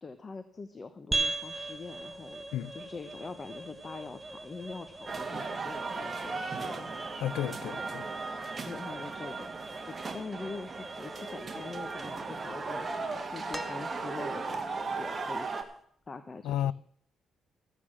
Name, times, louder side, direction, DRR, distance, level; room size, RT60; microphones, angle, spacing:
voice 1, 0.0-2.4 2.7-7.0 7.6-7.8 8.6-9.5 9.9-15.7 16.1-16.7, left 4 dB, 30° left, 1.0 m, -44 dB
sound 1, 1.1-15.7, right 3 dB, 15° right, 1.2 m, -41 dB
sound 2, 5.1-15.6, right 4 dB, 35° right, 1.9 m, -37 dB
voice 2, 7.2-8.1 16.4-16.7, left 11 dB, 90° left, 0.4 m, -32 dB
sound 3, 13.5-14.5 16.0-16.1, left 1 dB, 5° left, 1.3 m, -44 dB
14.0 x 8.7 x 6.2 m
cardioid pair, 90°, 0 cm